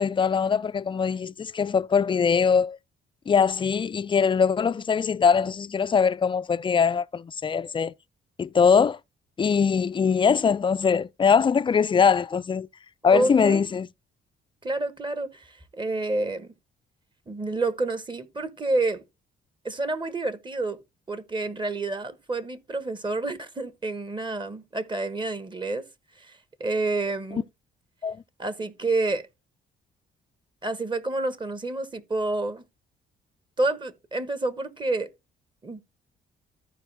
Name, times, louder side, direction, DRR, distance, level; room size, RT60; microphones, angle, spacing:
voice 1, 0.0-2.8 3.3-7.9 8.4-9.0 9.4-12.7 13.0-13.9 28.0-28.2, left 6 dB, 25° left, 0.4 m, -22 dB
voice 2, 13.1-13.6 14.6-16.5 17.3-19.0 19.6-20.8 21.1-25.9 26.1-27.4 28.4-29.3 30.6-32.6 33.6-35.1 35.6-35.8, right 2 dB, 25° right, 1.2 m, -29 dB
14.0 x 4.7 x 3.4 m
cardioid pair, 90°, 20 cm